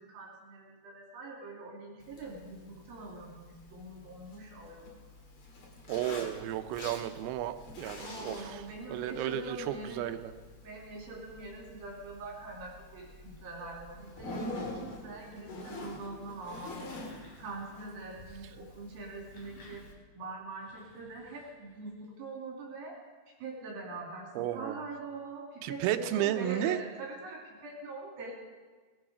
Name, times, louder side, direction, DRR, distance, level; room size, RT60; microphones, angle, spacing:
voice 1, 0.0-4.9 8.0-10.2 10.6-17.0 17.4-19.9 20.1-23.0 23.3-28.3, right 2 dB, 75° right, -2 dB, 4.5 m, -43 dB
Zipper (clothing), 2.0-19.9, left 2 dB, 45° left, 2.3 m, -47 dB
voice 2, 5.9-8.6 8.9-10.3 24.4-24.8 25.6-26.8, right 12 dB, 90° right, 10 dB, 2.7 m, -33 dB
sound 1, 16.3-17.8 19.0-22.1, left 1 dB, 65° left, 5.2 m, -57 dB
19.5 x 10.5 x 4.9 m, 1.4 s
omnidirectional pair, 4.4 m